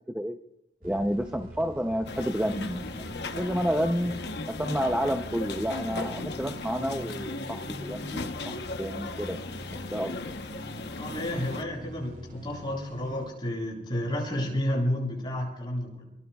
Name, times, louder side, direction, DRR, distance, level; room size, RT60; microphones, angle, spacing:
voice 1, 0.8-2.9 3.4-4.1 4.5-9.4 9.9-10.3, equal, 5° right, 4 dB, 0.6 m, -30 dB
sound 1, 0.8-13.3, equal, 50° right, 2.2 m, -43 dB
sound 2, 2.1-11.6, left 3 dB, 70° left, 1.0 m, -37 dB
voice 2, 11.0-16.0, left 1 dB, 25° left, -3 dB, 7.4 m, -31 dB
27.0 x 22.5 x 2.3 m, 0.85 s
head